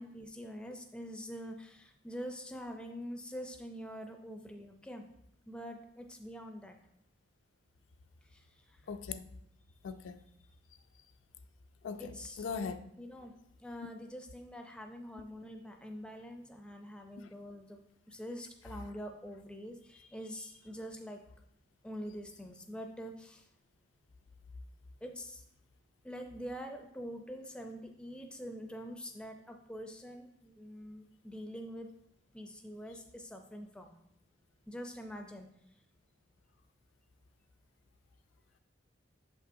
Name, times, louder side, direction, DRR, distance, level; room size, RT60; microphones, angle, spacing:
voice 1, 0.0-5.1 5.5-6.8 8.3-8.8 12.0-12.5 13.0-13.3 13.6-17.8 18.1-21.2 21.8-23.5 25.0-25.4 26.0-31.9 32.3-33.9 34.7-35.5, equal, 5° left, 4 dB, 0.4 m, -45 dB
voice 2, 8.9-9.2 9.8-10.2 11.8-12.8 17.2-17.3, left 5 dB, 75° left, 9 dB, 0.4 m, -40 dB
6.9 x 5.4 x 2.6 m, 0.76 s
head